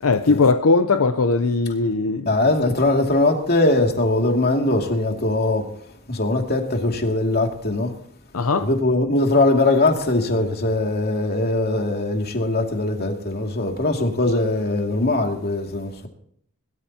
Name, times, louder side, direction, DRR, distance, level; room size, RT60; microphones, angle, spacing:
voice 1, 0.0-2.3 8.3-8.7, left 3 dB, 80° left, 0.7 m, -19 dB
voice 2, 2.3-5.7 6.1-7.9 8.6-16.1, left 2 dB, 45° left, 2.5 m, -21 dB
22.0 x 13.5 x 2.9 m
head